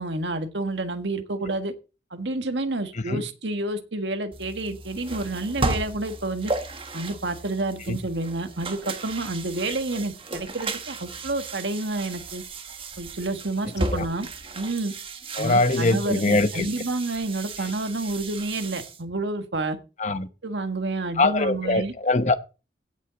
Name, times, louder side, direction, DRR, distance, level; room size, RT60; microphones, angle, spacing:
voice 1, 0.0-1.7 2.1-6.5 6.9-12.4 13.0-14.3 14.6-14.9 15.4-19.8 20.4-21.9, right 2 dB, 75° right, 1.6 m, -29 dB
sound 1, 4.3-19.0, right 2 dB, 30° right, 1.3 m, -35 dB
voice 2, 15.4-16.7 20.0-20.3 21.2-22.4, left 2 dB, 40° left, 0.8 m, -22 dB
16.5 x 6.5 x 4.0 m
head